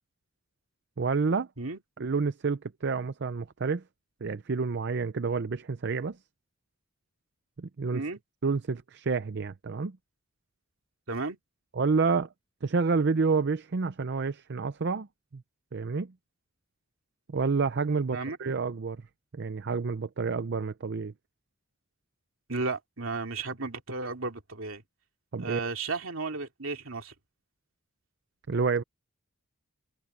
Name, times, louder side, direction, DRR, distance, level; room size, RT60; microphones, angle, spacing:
voice 1, 1.0-1.5 2.0-3.8 4.2-6.2 7.6-8.0 8.4-10.0 11.8-12.3 12.6-15.1 15.3-15.4 15.7-16.1 17.3-19.0 19.3-21.1 25.3-25.6 28.5-28.8, right 4 dB, 55° right, 0.6 m, -29 dB
voice 2, 22.5-24.8 25.4-27.1, right 3 dB, 70° right, 2.7 m, -34 dB
head